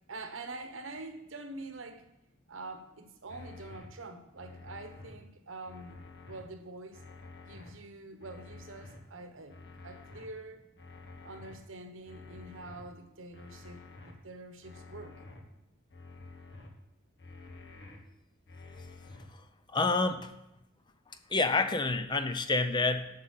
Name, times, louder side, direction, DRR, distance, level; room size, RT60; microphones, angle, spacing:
voice 1, 0.1-2.0 2.5-7.0 7.4-9.6 9.8-10.6 11.2-15.2, right 2 dB, 75° right, 7 dB, 1.1 m, -45 dB
sound 1, 3.3-3.9 4.4-5.1 5.6-6.4 6.9-7.7 8.2-9.0 9.5-10.3 10.8-11.5 12.0-12.8 13.3-14.1 14.6-15.4 15.9-16.7 17.2-18.0 18.5-19.2, left 3 dB, 60° left, 1.3 m, -49 dB
voice 2, 19.7-20.3 21.3-23.1, left 3 dB, 20° left, 10 dB, 0.5 m, -28 dB
7.8 x 6.5 x 7.4 m, 0.88 s
head